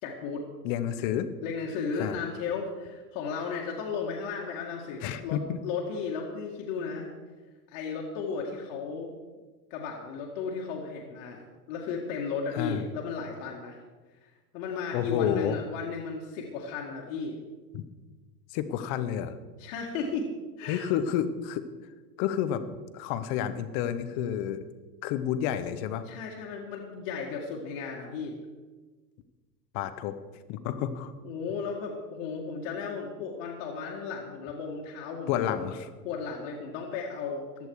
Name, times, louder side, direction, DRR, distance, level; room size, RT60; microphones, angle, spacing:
voice 1, 0.0-0.4 1.4-7.1 7.7-9.1 9.7-11.4 11.7-13.8 14.2-17.4 19.6-20.3 20.6-21.0 26.1-28.4 31.2-35.8 36.0-37.7, left 5 dB, 50° left, -2 dB, 2.1 m, -35 dB
voice 2, 0.6-1.3 2.0-2.2 5.0-5.6 12.5-12.8 14.9-15.6 17.7-17.8 18.5-19.4 20.7-21.6 22.2-22.6 22.9-24.6 25.0-26.0 29.7-30.2 30.5-31.1 35.3-35.9, left 10 dB, 35° left, 12 dB, 0.8 m, -30 dB
15.0 x 10.5 x 4.7 m, 1.3 s
supercardioid pair, 145°, 50 cm